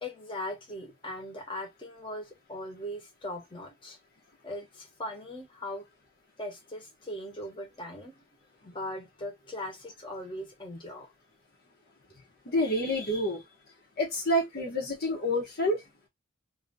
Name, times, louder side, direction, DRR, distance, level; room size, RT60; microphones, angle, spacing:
voice 1, 0.0-4.0 4.4-5.9 6.4-8.2 8.6-11.1 12.1-12.2, left 1 dB, 25° left, 1.1 m, -39 dB
voice 2, 12.5-13.4 14.0-15.8, left 1 dB, 50° left, 1.0 m, -28 dB
2.9 x 2.7 x 3.8 m
head